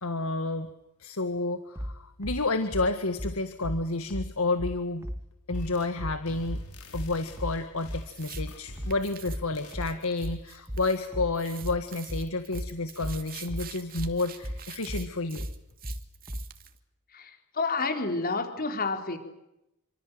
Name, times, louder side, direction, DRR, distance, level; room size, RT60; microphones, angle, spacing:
voice 1, 0.0-0.7 1.0-5.1 5.5-6.6 6.9-15.5, left 3 dB, 70° left, 9 dB, 1.8 m, -30 dB
sound 1, 1.8-16.5, equal, 15° right, 2.1 m, -36 dB
sound 2, 5.5-6.0 6.2-9.2 9.5-9.8, left 1 dB, 90° left, 6.3 m, -47 dB
sound 3, 8.0-8.4 8.9-11.1 11.3-16.8, right 10 dB, 40° right, 2.6 m, -46 dB
voice 2, 17.1-19.2, left 3 dB, 45° left, 6 dB, 4.3 m, -30 dB
29.0 x 25.5 x 7.9 m, 0.86 s
head